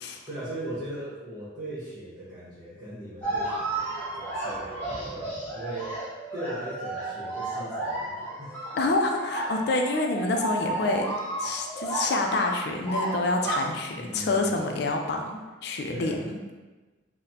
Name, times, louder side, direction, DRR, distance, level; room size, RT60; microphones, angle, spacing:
voice 1, 0.3-5.9 6.3-8.6 14.0-14.6 15.9-16.3, right 1 dB, 20° right, -11 dB, 1.1 m, -39 dB
sound 1, 3.2-13.6, right 2 dB, 10° left, 0.9 m, -33 dB
voice 2, 8.8-11.1 11.4-16.4, left 2 dB, 60° left, 2 dB, 0.4 m, -27 dB
4.0 x 2.1 x 2.7 m, 1.2 s
head